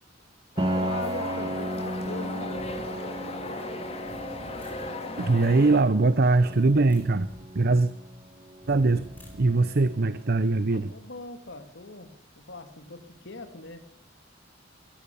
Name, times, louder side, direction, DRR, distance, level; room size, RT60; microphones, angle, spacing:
sound 1, 0.6-5.8, left 2 dB, 30° left, 2.2 m, -37 dB
Piano, 0.6-10.2, right 1 dB, 25° right, 1.1 m, -35 dB
voice 1, 0.8-3.8 10.7-13.9, left 3 dB, 65° left, 8 dB, 2.3 m, -41 dB
sound 2, 2.5-2.9 4.1-5.0 6.3-7.5 8.6-9.6, equal, 10° left, 5.4 m, -48 dB
voice 2, 5.2-7.3 7.5-7.9 8.7-10.9, right 3 dB, 55° right, 14 dB, 0.8 m, -22 dB
23.0 x 16.5 x 6.9 m, 0.78 s
head